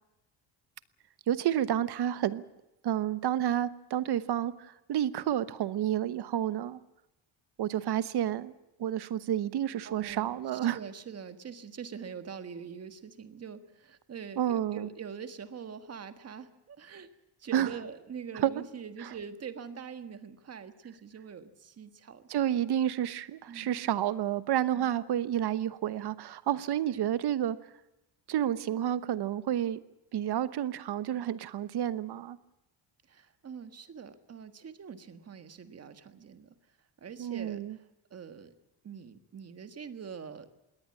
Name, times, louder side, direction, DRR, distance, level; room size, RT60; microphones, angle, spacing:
voice 1, 1.3-2.4 2.8-6.8 7.6-8.5 8.8-10.8 14.4-14.9 17.5-17.7 18.4-18.5 22.3-27.6 28.3-29.8 30.1-32.4 37.2-37.8, right 11 dB, 55° right, 15 dB, 1.1 m, -30 dB
voice 2, 9.8-17.1 17.4-22.5 23.5-23.8 24.7-24.9 26.9-27.1 33.1-36.6 37.0-38.5 38.8-40.5, right 6 dB, 30° right, 10 dB, 1.5 m, -44 dB
21.5 x 18.5 x 8.6 m, 0.93 s
cardioid pair, 170°, 47 cm